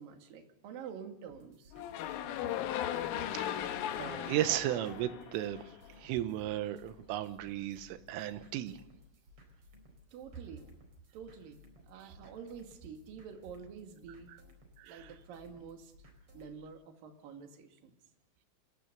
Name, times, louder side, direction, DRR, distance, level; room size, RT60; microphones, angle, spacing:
voice 1, 0.0-1.7 10.1-10.7 11.1-14.3 14.8-15.9 16.3-18.0, right 6 dB, 55° right, 4 dB, 3.3 m, -48 dB
sound 1, 1.3-16.5, left 1 dB, 30° right, 4.4 m, -60 dB
sound 2, 1.7-5.9, left 11 dB, 80° left, 3.8 m, -37 dB
voice 2, 3.3-3.7 4.0-5.7 6.0-8.8 14.8-15.1, right 13 dB, 85° right, 11 dB, 3.6 m, -35 dB
27.0 x 15.0 x 6.9 m, 0.79 s
omnidirectional pair, 5.8 m